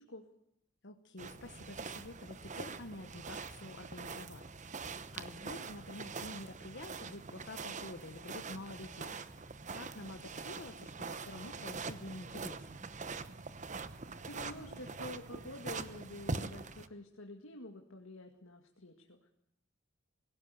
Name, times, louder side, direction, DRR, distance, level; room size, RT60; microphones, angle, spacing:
voice 1, 0.8-4.5 4.8-12.9, left 2 dB, 60° left, 8 dB, 1.3 m, -49 dB
sound 1, 1.2-16.9, right 4 dB, 40° right, 1.0 m, -44 dB
voice 2, 14.2-19.3, left 1 dB, 90° left, 3 dB, 2.2 m, -48 dB
21.0 x 17.5 x 9.5 m, 0.75 s
head